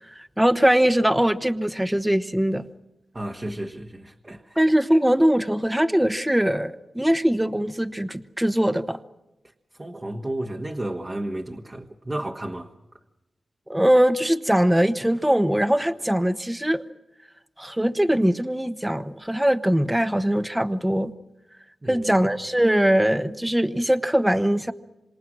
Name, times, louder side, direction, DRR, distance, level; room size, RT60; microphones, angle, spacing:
voice 1, 0.1-2.7 4.6-9.0 13.7-16.8 17.6-21.1 21.9-24.7, equal, 10° right, 1.1 m, -21 dB
voice 2, 3.1-4.6 9.8-12.7 21.8-22.3, right 1 dB, 30° right, 1.5 m, -32 dB
26.5 x 26.0 x 6.2 m
cardioid pair, 50°, 0 cm